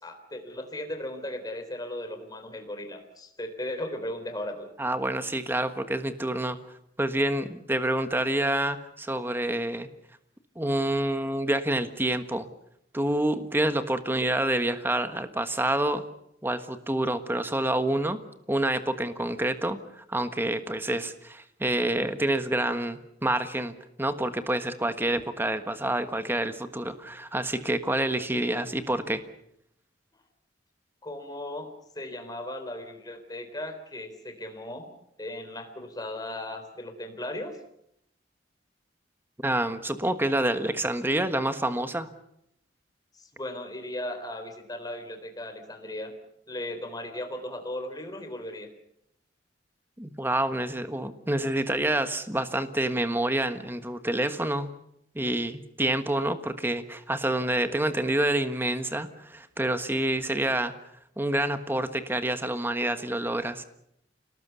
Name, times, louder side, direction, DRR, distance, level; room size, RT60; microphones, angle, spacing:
voice 1, 0.0-4.7 31.0-31.7 31.9-34.9 35.2-37.6 43.1-46.1 46.5-48.7, left 1 dB, 20° left, 6 dB, 3.7 m, -37 dB
voice 2, 4.8-6.6 7.0-9.9 10.5-12.5 12.9-16.0 16.4-18.2 18.5-29.2 39.4-42.1 50.0-54.7 55.1-60.7 61.2-63.6, right 1 dB, 10° right, 9 dB, 1.4 m, -28 dB
28.5 x 19.0 x 6.9 m, 0.75 s
head